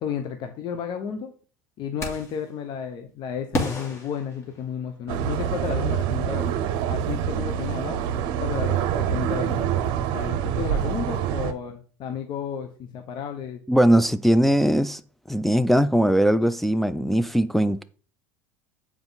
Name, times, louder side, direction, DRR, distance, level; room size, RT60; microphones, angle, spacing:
voice 1, 0.0-1.3 1.8-6.6 6.9-8.0 8.4-9.7 10.1-13.6, left 7 dB, 55° left, 0.9 m, -32 dB
sound 1, 2.0-2.5 3.5-5.1, left 2 dB, 30° left, 2.2 m, -31 dB
sound 2, 5.1-11.5, right 9 dB, 65° right, 0.7 m, -26 dB
voice 2, 13.7-15.0 15.3-17.8, equal, ahead, 0.4 m, -20 dB
7.0 x 4.7 x 4.0 m
hypercardioid pair, 85°, 10 cm